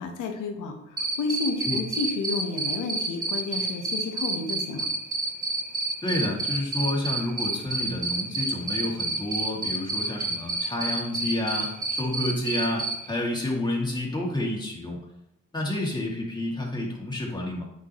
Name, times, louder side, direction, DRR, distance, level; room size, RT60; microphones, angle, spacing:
voice 1, 0.0-4.9, left 4 dB, 85° left, 3 dB, 1.5 m, -31 dB
Cricket, 1.0-12.9, right 3 dB, 30° right, 1.1 m, -28 dB
voice 2, 6.0-15.0 15.5-17.6, left 1 dB, 15° left, -2 dB, 2.6 m, -29 dB
9.1 x 6.1 x 3.2 m, 0.83 s
cardioid pair, 90°, 30 cm